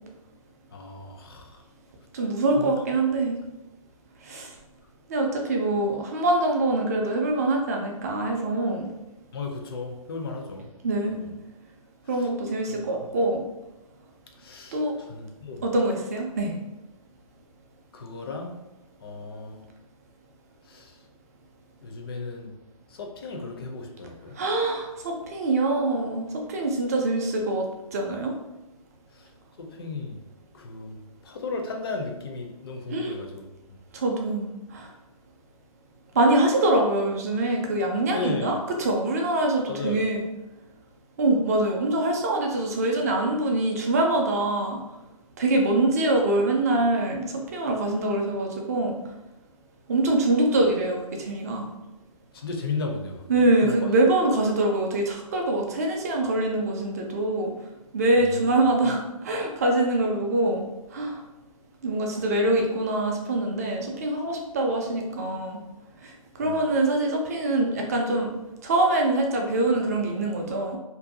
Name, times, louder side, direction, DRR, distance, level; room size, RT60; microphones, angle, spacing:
voice 1, 0.7-1.6 2.6-2.7 9.3-10.7 11.1-11.3 12.1-12.3 12.7-12.8 14.4-14.8 15.1-15.6 17.9-18.5 19.0-19.6 20.7-21.0 21.8-22.5 22.9-24.4 29.1-29.3 29.6-30.2 30.5-33.4 33.7-33.8 38.1-38.6 39.7-40.0 52.3-53.8 58.8-58.9 66.4-66.6, left 3 dB, 40° left, 2 dB, 0.4 m, -35 dB
voice 2, 2.1-3.4 4.2-4.5 5.1-8.9 10.8-11.2 12.1-13.4 14.7-14.9 15.6-16.5 24.4-27.7 27.9-28.3 32.9-33.1 33.9-34.9 36.1-40.2 41.2-44.8 45.4-48.9 49.9-51.7 53.3-57.5 57.9-60.6 60.9-61.2 61.8-65.6 66.0-66.1 66.4-68.3 68.6-70.8, right 2 dB, 25° right, 1 dB, 0.3 m, -24 dB
2.6 x 2.2 x 2.6 m, 0.98 s
figure-of-eight pair, 145°, 19 cm